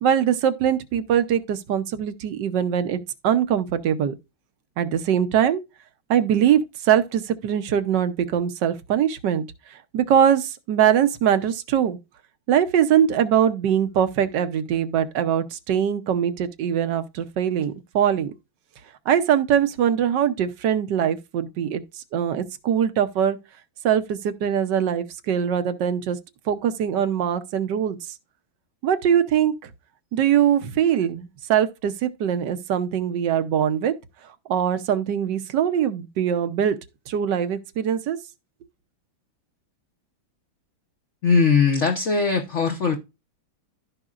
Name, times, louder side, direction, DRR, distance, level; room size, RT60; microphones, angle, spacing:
voice 1, 0.0-4.1 4.8-5.6 6.1-9.4 9.7-12.0 12.5-18.3 19.1-21.8 22.1-23.4 23.8-26.2 26.5-28.0 28.8-29.7 30.1-33.9 34.5-36.7 37.1-38.2, right 9 dB, 65° right, 1.4 m, -22 dB
voice 2, 41.2-43.0, left 5 dB, 45° left, 1.0 m, -20 dB
14.5 x 5.3 x 2.5 m
omnidirectional pair, 2.1 m